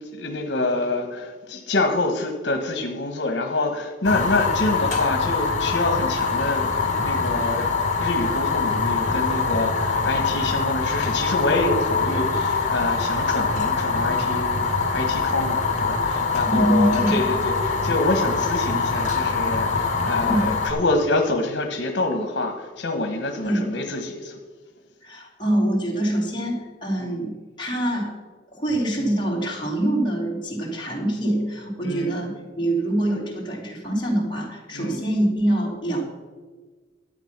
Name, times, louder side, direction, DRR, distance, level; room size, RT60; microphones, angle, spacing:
voice 1, 0.1-7.7 8.0-24.4 27.0-27.2 31.8-32.2 34.7-35.0, left 2 dB, 75° left, 4 dB, 1.2 m, -26 dB
Fire, 4.0-20.7, left 4 dB, 45° left, 2.2 m, -24 dB
voice 2, 16.5-17.2 20.2-20.5 23.4-23.7 25.0-28.1 28.5-36.0, right 1 dB, 25° left, -3 dB, 3.0 m, -24 dB
11.5 x 8.8 x 6.0 m, 1.4 s
head